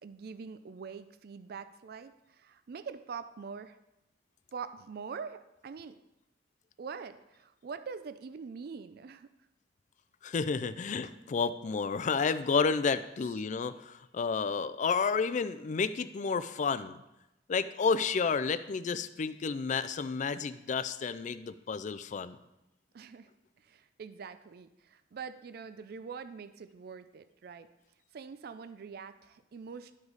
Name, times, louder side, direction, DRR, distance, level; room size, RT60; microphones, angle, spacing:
voice 1, 0.0-3.8 4.5-6.0 6.8-9.3 22.9-23.3 23.6-27.7 28.1-29.9, right 5 dB, 60° right, 12 dB, 0.4 m, -44 dB
voice 2, 10.2-17.0 17.5-22.4, left 5 dB, 45° left, 14 dB, 0.4 m, -31 dB
11.0 x 4.9 x 4.0 m, 0.91 s
head